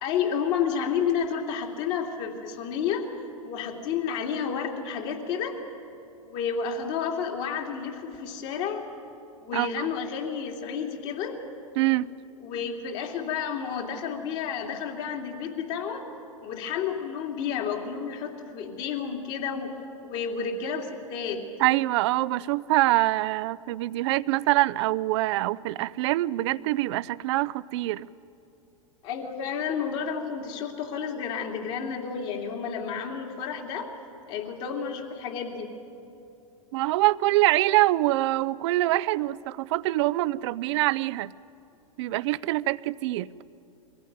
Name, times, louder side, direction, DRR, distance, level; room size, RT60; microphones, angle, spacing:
voice 1, 0.0-3.1 3.4-5.6 6.3-8.8 9.4-11.4 12.4-16.1 16.4-19.7 20.0-21.4 29.0-33.9 34.3-35.7, left 7 dB, 50° left, 2 dB, 2.7 m, -31 dB
voice 2, 9.5-9.9 11.8-12.1 21.6-28.1 36.7-41.3 42.0-43.3, right 17 dB, 50° right, 19 dB, 0.5 m, -24 dB
22.5 x 15.0 x 9.5 m, 2.8 s
hypercardioid pair, 100°, 18 cm